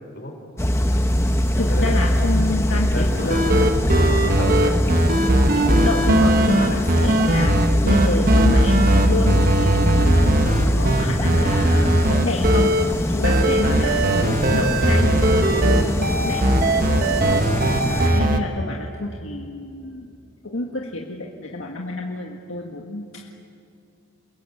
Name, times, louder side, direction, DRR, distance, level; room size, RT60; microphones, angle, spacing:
sound 1, 0.6-18.1, equal, 15° left, 1.1 m, -22 dB
voice 1, 1.6-3.4 5.5-12.7 13.1-16.5 17.8-20.1 20.4-23.3, left 2 dB, 70° left, -1 dB, 1.9 m, -29 dB
voice 2, 2.9-4.8 16.9-17.2, left 1 dB, 50° left, 3 dB, 4.6 m, -32 dB
sound 2, 3.2-12.9 13.2-18.4, right 1 dB, 40° right, 1.4 m, -19 dB
29.0 x 21.5 x 8.7 m, 2.5 s
head